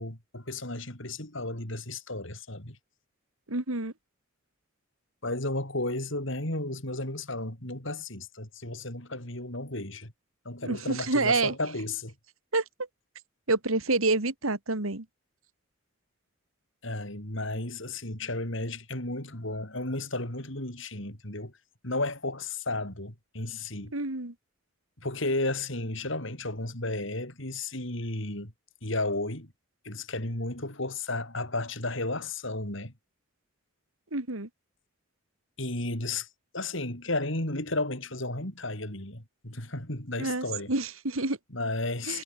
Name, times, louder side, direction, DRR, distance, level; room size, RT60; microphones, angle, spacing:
voice 1, 0.0-2.8 5.2-10.1 10.5-12.1 16.8-21.5 21.8-23.9 25.0-28.5 28.8-29.5 29.8-32.9 35.6-36.3 36.5-40.7 41.5-42.2, left 2 dB, 70° left, 5.7 m, -33 dB
voice 2, 3.5-3.9 10.6-11.5 12.5-12.6 13.5-15.0 23.9-24.3 34.1-34.5 40.2-41.4 42.1-42.2, right 3 dB, 90° right, 2.6 m, -28 dB
head